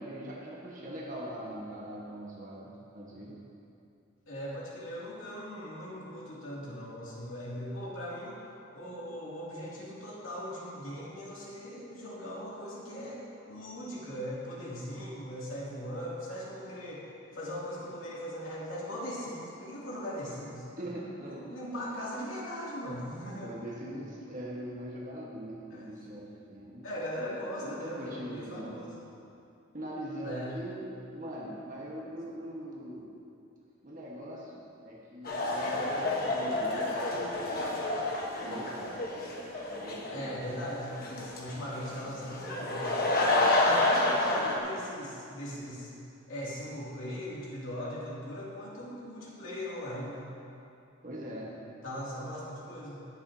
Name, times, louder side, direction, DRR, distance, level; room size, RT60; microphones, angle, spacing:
voice 1, 0.0-3.4 20.8-21.4 23.4-26.8 27.2-28.8 29.7-30.8 31.1-33.1 33.8-36.9 38.4-39.1 39.7-40.4 43.4-43.7 51.0-51.5, equal, 40° right, -5 dB, 1.3 m, -42 dB
voice 2, 4.3-8.4 8.7-17.0 17.3-20.7 21.2-23.5 25.7-25.8 26.8-29.0 30.2-30.6 40.1-42.9 43.7-45.9 46.3-50.3 51.8-53.1, equal, 75° left, -6 dB, 2.6 m, -39 dB
sound 1, 35.2-44.6, left 2 dB, 45° left, 1.2 m, -29 dB
19.0 x 7.0 x 2.8 m, 2.6 s
head